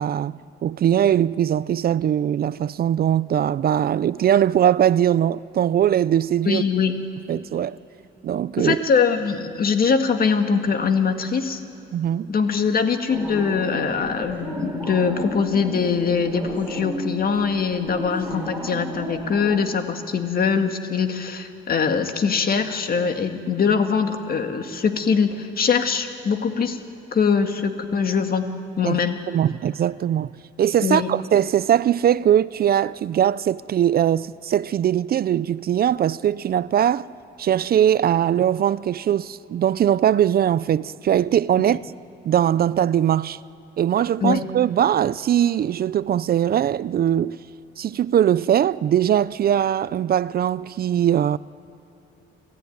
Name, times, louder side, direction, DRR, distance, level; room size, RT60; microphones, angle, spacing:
voice 1, 0.0-6.6 7.3-7.8 8.2-8.8 11.9-12.3 28.9-29.0 29.3-30.3 30.6-37.1 37.4-41.9 42.2-43.4 43.8-47.4 47.8-51.4, right 10 dB, 50° right, 0.4 m, -21 dB
voice 2, 6.4-6.9 8.6-11.6 12.3-26.8 27.1-28.5 28.8-29.2 30.8-31.1 44.2-44.4, left 6 dB, 50° left, 1.9 m, -22 dB
sound 1, 13.1-19.6, equal, 10° right, 5.5 m, -33 dB
29.0 x 14.0 x 9.4 m
cardioid pair, 90°, 20 cm